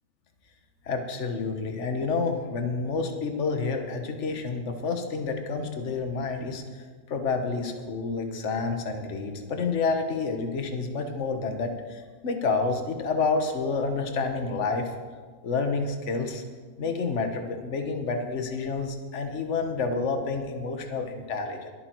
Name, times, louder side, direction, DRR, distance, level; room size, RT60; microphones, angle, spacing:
voice 1, 0.8-6.6 7.1-14.9 15.4-16.4 16.8-21.7, left 4 dB, 55° left, 5 dB, 1.6 m, -29 dB
22.0 x 8.7 x 4.6 m, 1.5 s
omnidirectional pair, 1.5 m